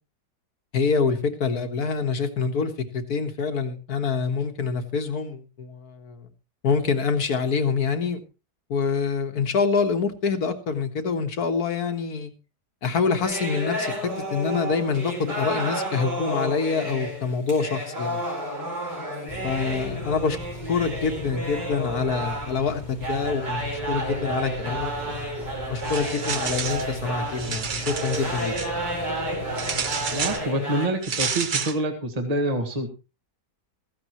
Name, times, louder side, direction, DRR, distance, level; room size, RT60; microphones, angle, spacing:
voice 1, 0.7-6.2 6.6-8.2 8.7-12.3 12.8-18.2 19.4-20.4 20.7-25.2 25.7-28.6, left 5 dB, 65° left, 7 dB, 2.0 m, -26 dB
sound 1, 13.2-30.9, right 1 dB, 85° right, 5.1 m, -31 dB
sound 2, 19.3-30.4, left 2 dB, 25° left, 1.8 m, -39 dB
sound 3, 25.8-26.9 27.3-28.7 29.6-30.4 31.0-31.8, right 6 dB, 45° right, 0.7 m, -30 dB
voice 2, 30.1-32.9, right 1 dB, 25° right, 4 dB, 1.8 m, -26 dB
16.0 x 14.5 x 3.1 m, 0.30 s
omnidirectional pair, 1.8 m